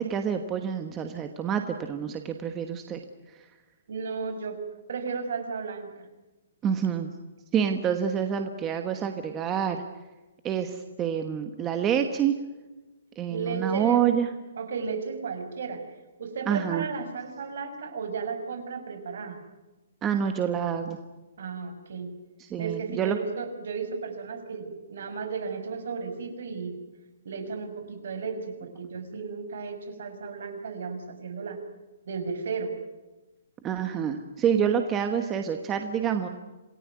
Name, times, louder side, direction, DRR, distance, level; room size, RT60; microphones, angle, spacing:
voice 1, 0.0-3.0 6.6-7.1 7.5-9.8 10.4-12.3 13.2-14.3 16.5-16.9 20.0-21.0 22.5-23.2 33.6-36.3, right 8 dB, 15° right, 6 dB, 1.2 m, -27 dB
voice 2, 3.9-4.6 4.9-6.1 13.3-14.1 14.6-15.8 16.2-19.4 21.4-22.1 22.6-26.7 27.2-31.6 32.1-32.7, right 5 dB, 60° right, 7 dB, 6.2 m, -34 dB
27.5 x 18.0 x 9.5 m, 1.1 s
hypercardioid pair, 175°, 0 cm